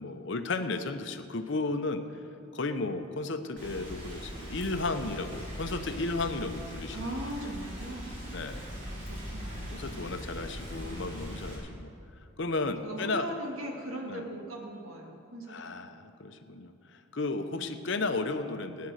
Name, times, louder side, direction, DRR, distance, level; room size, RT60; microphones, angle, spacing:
voice 1, 0.0-2.0 2.5-7.1 8.3-8.6 9.7-11.9 12.4-13.3 14.0-14.2 15.5-18.9, left 3 dB, 55° left, 8 dB, 0.8 m, -34 dB
Rain, 3.6-11.6, equal, 35° right, 4.1 m, -41 dB
voice 2, 6.9-8.2 8.8-10.0 10.7-11.1 12.8-15.9 17.5-17.9, right 1 dB, 80° right, 0 dB, 2.2 m, -40 dB
16.0 x 9.5 x 6.5 m, 2.7 s
head